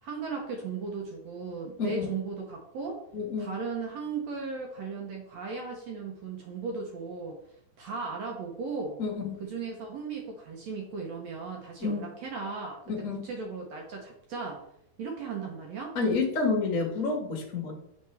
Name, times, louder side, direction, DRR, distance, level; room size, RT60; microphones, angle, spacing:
voice 1, 0.0-3.0 3.4-7.4 7.8-9.0 9.4-12.8 13.2-14.7 15.0-16.0, right 4 dB, 75° right, 1 dB, 1.5 m, -36 dB
voice 2, 3.1-3.5 9.0-9.4 11.8-12.0 12.9-13.2 15.9-17.7, left 4 dB, 50° left, -1 dB, 0.9 m, -29 dB
8.2 x 4.5 x 3.3 m, 0.75 s
omnidirectional pair, 4.1 m